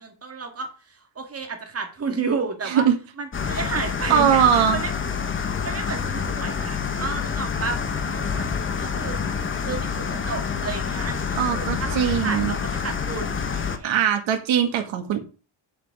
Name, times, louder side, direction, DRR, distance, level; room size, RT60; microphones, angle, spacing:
voice 1, 0.0-2.8 3.2-4.9 5.6-8.5 8.8-9.2 9.6-13.9 14.6-14.8, right 4 dB, 30° right, 5 dB, 2.1 m, -32 dB
sound 1, 3.3-13.8, left 6 dB, 25° left, 1.1 m, -27 dB
voice 2, 4.1-4.8 11.3-12.6 13.8-15.2, right 8 dB, 85° right, 5 dB, 1.9 m, -21 dB
7.8 x 7.4 x 4.8 m, 0.33 s
cardioid pair, 150°, 45 cm